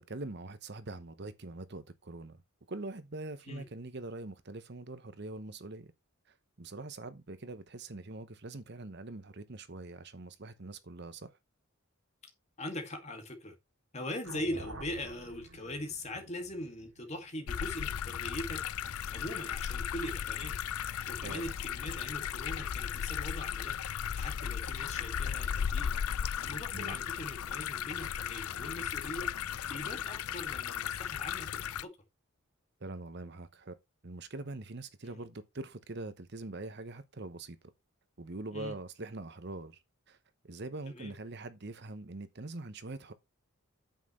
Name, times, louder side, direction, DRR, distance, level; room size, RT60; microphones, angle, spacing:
voice 1, 0.0-2.4 2.7-5.9 6.6-11.3 21.2-21.4 26.7-27.0 32.8-33.8 34.0-37.7 38.2-39.8 40.1-40.2 40.4-43.1, right 2 dB, 50° right, 1.0 m, -43 dB
voice 2, 12.6-13.6 13.9-18.7 19.0-23.7 24.1-25.9 26.4-29.4 29.7-32.0 35.1-35.2 38.5-38.7 40.9-41.1, left 1 dB, 30° left, 2.2 m, -41 dB
sound 1, 14.2-18.5, right 1 dB, 75° right, 3.7 m, -49 dB
sound 2, 17.5-31.8, left 8 dB, 85° left, 0.5 m, -36 dB
9.0 x 7.7 x 3.3 m
head